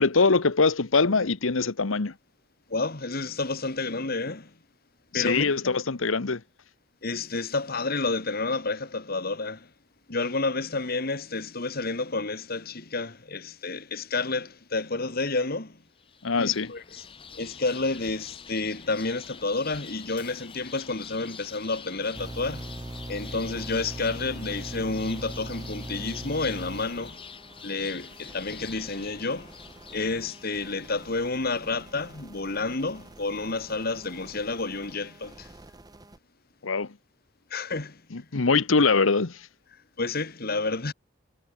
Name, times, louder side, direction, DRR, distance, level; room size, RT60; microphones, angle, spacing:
voice 1, 0.0-2.1 5.1-6.4 16.2-16.7 36.6-36.9 38.1-39.4, left 4 dB, 80° left, 1.1 m, -23 dB
voice 2, 2.7-4.5 5.1-5.8 7.0-9.7 10.1-15.8 16.4-17.1 17.4-22.8 23.1-27.2 27.6-29.5 29.9-35.5 37.5-38.3 40.0-40.9, left 3 dB, 50° left, 1.8 m, -30 dB
sound 1, 16.0-31.1, left 6 dB, 25° left, 1.3 m, -46 dB
sound 2, 22.1-36.2, right 1 dB, 20° right, 0.9 m, -42 dB
head